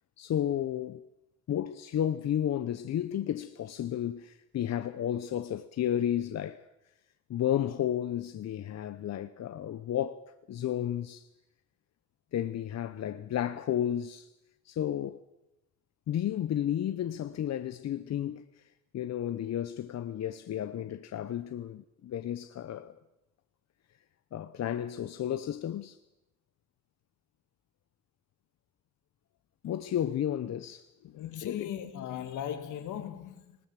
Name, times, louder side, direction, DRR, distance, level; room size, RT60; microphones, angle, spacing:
voice 1, 0.2-1.0 1.5-6.6 7.3-11.3 12.3-14.3 14.6-15.2 16.1-18.6 18.9-23.0 24.3-26.0 29.6-30.9 31.4-31.7, left 10 dB, 60° left, 0.9 m, -32 dB
voice 2, 31.0-33.6, left 10 dB, 80° left, 2.0 m, -38 dB
19.5 x 18.5 x 7.6 m
cardioid pair, 90°, 30 cm